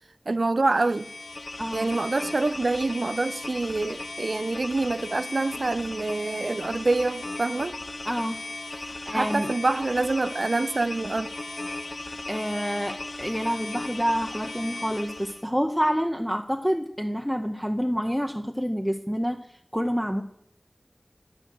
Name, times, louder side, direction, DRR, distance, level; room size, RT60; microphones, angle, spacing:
voice 1, 0.3-1.1 1.7-7.7 9.1-11.3, right 2 dB, 75° right, 0.4 m, -26 dB
sound 1, 0.7-15.5, left 2 dB, 75° left, 0.7 m, -37 dB
voice 2, 8.0-8.4 8.7-9.5 12.3-19.5 19.7-20.2, equal, ahead, 0.7 m, -28 dB
10.0 x 8.7 x 6.2 m
wide cardioid pair, 55°, 0 cm